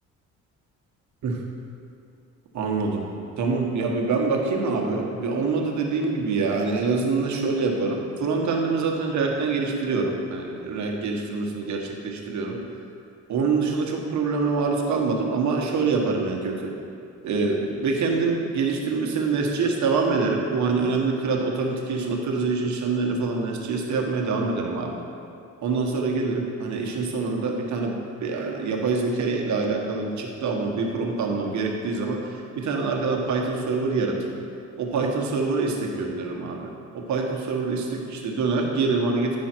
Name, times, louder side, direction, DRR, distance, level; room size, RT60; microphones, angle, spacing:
voice 1, 2.5-3.0 3.4-12.6 13.3-16.7 17.2-25.0 25.6-27.9 28.2-32.2 32.6-34.4 34.8-39.4, right 4 dB, 70° right, 0 dB, 1.3 m, -25 dB
10.5 x 5.6 x 4.4 m, 2.5 s
cardioid pair, 90°, 30 cm